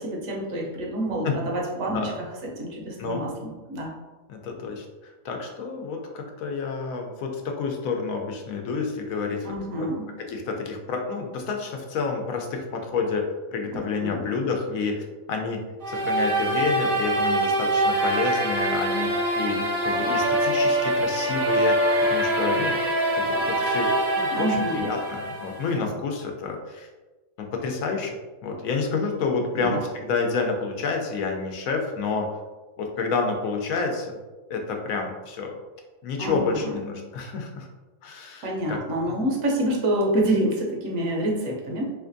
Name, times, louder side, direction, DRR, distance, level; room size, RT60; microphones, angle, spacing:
voice 1, 0.0-2.3 2.6-3.9 9.4-10.1 13.7-14.2 24.3-24.9 29.5-29.8 36.2-36.7 38.4-41.9, right 1 dB, 75° right, -1 dB, 1.1 m, -27 dB
voice 2, 4.3-9.9 10.2-13.2 13.5-15.6 15.9-22.8 23.1-26.9 27.4-28.1 28.4-32.3 32.8-34.2 34.5-35.5 36.0-37.7 38.0-38.8 39.1-39.2, left 4 dB, 85° left, 2 dB, 1.0 m, -29 dB
sound 1, 15.8-25.8, right 1 dB, 55° right, 0.6 m, -24 dB
3.3 x 3.1 x 2.5 m, 1.2 s
omnidirectional pair, 1.4 m